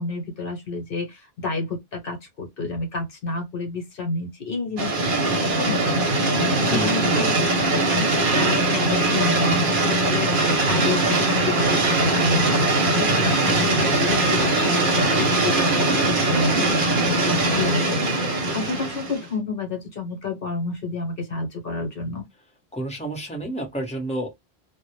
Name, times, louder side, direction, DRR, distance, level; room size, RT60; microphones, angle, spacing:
voice 1, 0.0-7.3 7.7-12.6 13.0-17.8 18.5-22.2, left 3 dB, 60° left, 0.9 m, -30 dB
sound 1, 4.8-19.3, right 2 dB, 55° right, 0.8 m, -21 dB
voice 2, 13.4-13.8 22.7-24.3, right 1 dB, 5° left, 0.7 m, -30 dB
2.0 x 2.0 x 2.9 m
omnidirectional pair, 1.1 m